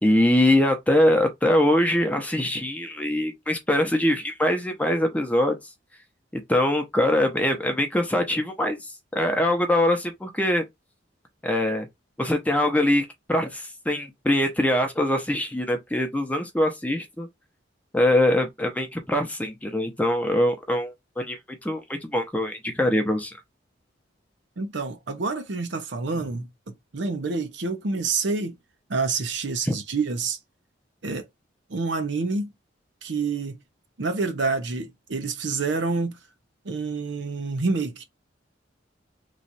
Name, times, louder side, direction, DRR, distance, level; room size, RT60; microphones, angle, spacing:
voice 1, 0.0-5.6 6.3-10.6 11.4-11.9 12.2-17.3 17.9-23.4 29.7-29.8, left 1 dB, 10° left, 0.7 m, -23 dB
voice 2, 24.6-28.6 28.9-30.4 31.0-31.2 31.7-32.5 33.0-33.6 34.0-36.2 36.6-38.0, right 4 dB, 70° right, 0.7 m, -28 dB
3.1 x 2.4 x 4.0 m
head